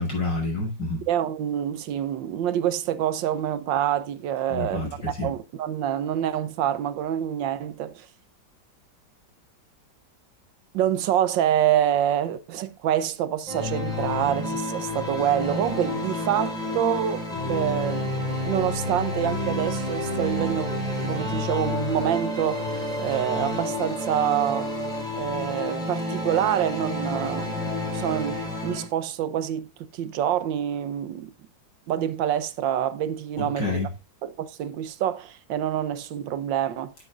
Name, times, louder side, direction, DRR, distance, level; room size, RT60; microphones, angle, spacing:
voice 1, 0.0-1.0 4.5-5.3 33.4-33.9, left 3 dB, 70° left, 7.0 m, -28 dB
voice 2, 1.1-4.9 5.2-8.1 10.7-18.1 18.5-20.7 21.0-24.7 25.2-28.4 28.6-31.3 31.9-33.8 34.2-36.9, right 10 dB, 85° right, 1.5 m, -26 dB
sound 1, 13.5-28.8, left 1 dB, ahead, 4.2 m, -29 dB
10.5 x 9.3 x 2.5 m
omnidirectional pair, 2.0 m